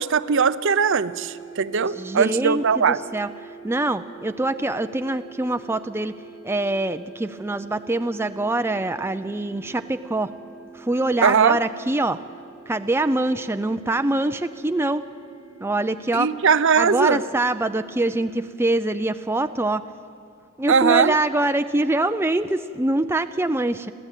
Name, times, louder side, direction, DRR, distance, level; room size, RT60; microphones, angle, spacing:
voice 1, 0.0-3.0 11.2-11.6 16.1-17.2 20.7-21.1, right 6 dB, 60° right, 14 dB, 0.6 m, -20 dB
sound 1, 0.8-18.3, right 5 dB, 80° right, 1.7 m, -45 dB
voice 2, 2.0-3.3 3.6-6.1 6.4-10.3 10.7-12.2 12.7-15.0 15.6-16.3 16.8-19.8 20.6-23.9, right 2 dB, 10° right, 9 dB, 0.4 m, -24 dB
29.5 x 13.0 x 9.1 m, 2.4 s
head